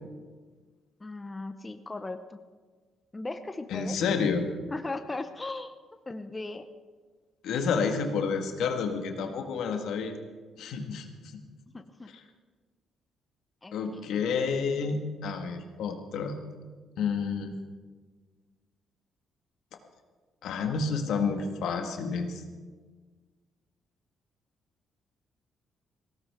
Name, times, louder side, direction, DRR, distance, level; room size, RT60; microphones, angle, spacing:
voice 1, 1.0-2.4 3.1-4.0 4.7-5.7 6.1-6.7 9.5-9.6 11.7-12.1 13.6-14.0, left 2 dB, 20° left, 8 dB, 0.8 m, -37 dB
voice 2, 3.7-4.5 7.4-10.1 10.6-11.4 13.7-16.4 17.0-17.5 20.4-22.4, left 5 dB, 80° left, 5 dB, 1.7 m, -30 dB
19.0 x 16.5 x 3.7 m, 1.4 s
cardioid pair, 90°, 0 cm